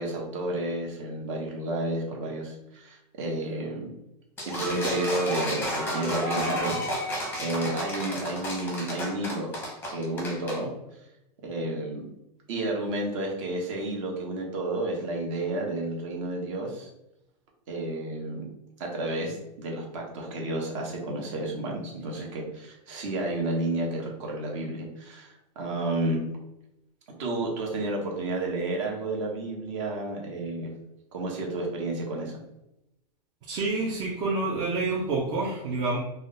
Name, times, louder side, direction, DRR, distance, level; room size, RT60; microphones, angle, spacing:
voice 1, 0.0-3.9 4.4-9.6 9.9-10.7 11.4-12.0 12.5-16.9 17.7-18.4 18.8-26.3 27.2-30.7 31.1-32.4, right 2 dB, 50° right, 0 dB, 1.0 m, -31 dB
sound 1, 4.4-10.6, equal, 10° left, 0.7 m, -31 dB
voice 2, 33.5-36.0, right 3 dB, 20° right, -3 dB, 0.3 m, -28 dB
2.4 x 2.2 x 3.8 m, 0.87 s
supercardioid pair, 155°, 21 cm